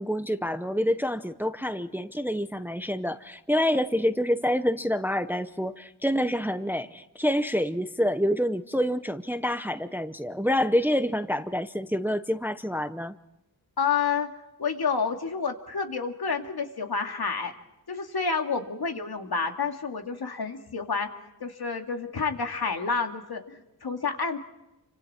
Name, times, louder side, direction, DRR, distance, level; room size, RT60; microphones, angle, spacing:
voice 1, 0.0-13.2, equal, 5° right, 11 dB, 0.7 m, -27 dB
voice 2, 13.8-14.3 14.6-17.5 17.9-21.1 21.4-24.4, left 5 dB, 70° left, 4 dB, 2.4 m, -29 dB
29.0 x 25.5 x 4.4 m, 0.91 s
wide cardioid pair, 110°, 39 cm